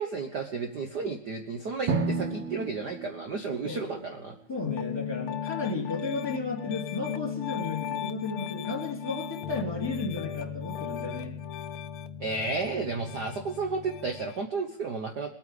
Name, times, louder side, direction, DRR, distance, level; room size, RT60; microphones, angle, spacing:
voice 1, 0.0-4.4 12.2-15.4, right 4 dB, 90° right, 4 dB, 0.9 m, -32 dB
Drum, 1.9-4.4, right 4 dB, 60° right, 2.9 m, -32 dB
voice 2, 3.6-4.0 4.5-11.3, left 3 dB, 10° left, 0 dB, 2.6 m, -34 dB
Piano, 4.7-14.4, left 9 dB, 85° left, 1.2 m, -36 dB
21.0 x 9.0 x 5.0 m, 0.75 s
omnidirectional pair, 3.6 m